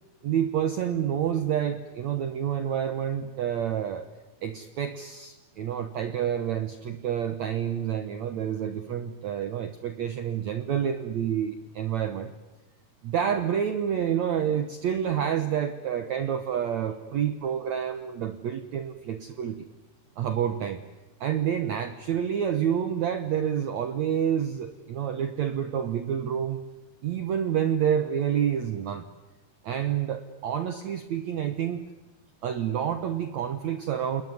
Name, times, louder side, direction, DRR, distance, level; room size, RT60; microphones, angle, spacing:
voice 1, 0.2-4.1 4.4-12.3 13.0-19.7 20.2-20.8 21.2-26.6 27.0-29.0 29.6-31.8 32.4-34.2, right 9 dB, 75° right, 9 dB, 1.6 m, -28 dB
29.0 x 20.5 x 9.7 m, 1.1 s
omnidirectional pair, 4.9 m